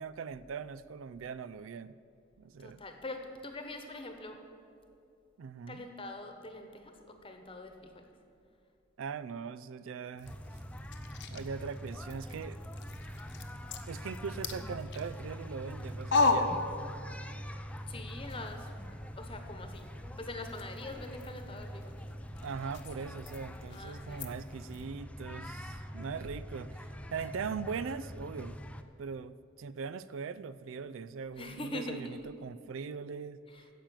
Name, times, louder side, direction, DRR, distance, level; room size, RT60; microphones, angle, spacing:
voice 1, 0.0-2.0 2.4-2.8 5.4-5.9 9.0-10.3 11.3-12.6 13.9-16.6 22.4-28.6 29.0-33.4, right 5 dB, 75° right, 16 dB, 0.4 m, -40 dB
voice 2, 2.4-4.4 5.7-8.1 17.9-19.9 20.2-22.1 22.4-22.5 23.7-24.4 31.4-32.3 33.5-33.7, left 2 dB, 25° left, 5 dB, 1.1 m, -44 dB
sound 1, 10.2-17.3 17.7-24.9, left 3 dB, 60° left, 0.9 m, -38 dB
sound 2, 10.2-28.8, equal, 5° left, 0.4 m, -44 dB
10.0 x 7.5 x 9.0 m, 2.6 s
head